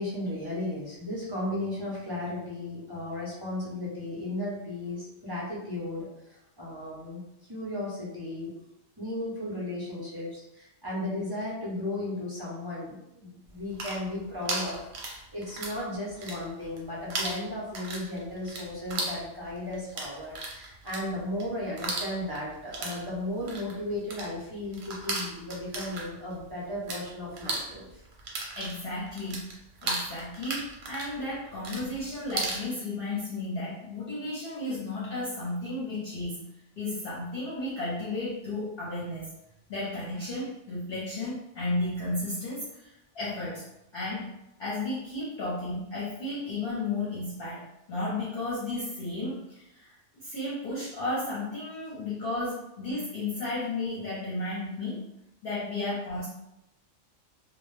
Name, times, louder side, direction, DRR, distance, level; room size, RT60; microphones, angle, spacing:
voice 1, 0.0-7.2 7.5-8.5 9.0-28.0, left 1 dB, 30° right, -7 dB, 0.4 m, -35 dB
sound 1, 13.6-15.8 16.1-16.8 17.1-27.0 27.3-32.6, right 3 dB, 85° right, 1.0 m, -35 dB
voice 2, 28.6-29.5 29.8-36.5 36.8-39.3 39.7-43.6 43.9-44.3 44.6-50.0 50.2-55.0 55.4-56.3, left 2 dB, 55° left, -8 dB, 0.8 m, -33 dB
2.1 x 2.0 x 3.0 m, 0.84 s
omnidirectional pair, 1.3 m